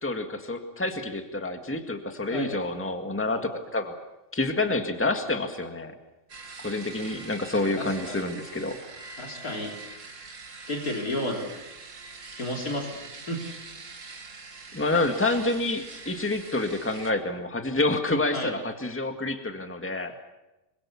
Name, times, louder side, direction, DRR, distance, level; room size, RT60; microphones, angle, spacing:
voice 1, 0.0-3.9 4.3-5.9 6.6-8.8 14.7-20.1, left 2 dB, 10° left, 5 dB, 1.8 m, -28 dB
Electric shaver shaving, 6.3-17.1, right 4 dB, 60° right, 2.2 m, -44 dB
voice 2, 7.7-8.2 9.2-9.7 10.7-11.4 12.3-12.9 13.3-13.4 13.8-14.0 18.3-18.5, left 1 dB, 80° left, 0 dB, 3.8 m, -32 dB
26.0 x 24.0 x 7.2 m, 1.0 s
omnidirectional pair, 1.5 m